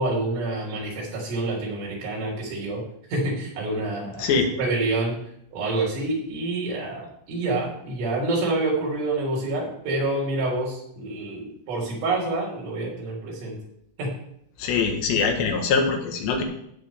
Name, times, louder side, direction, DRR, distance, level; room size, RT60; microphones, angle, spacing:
voice 1, 0.0-2.8 3.1-4.3 4.6-5.2 5.5-13.6 14.0-14.2, right 2 dB, 80° right, -3 dB, 5.8 m, -27 dB
voice 2, 4.2-4.5 14.6-16.4, left 5 dB, 80° left, 3 dB, 3.7 m, -23 dB
16.0 x 7.6 x 3.6 m, 0.74 s
omnidirectional pair, 4.9 m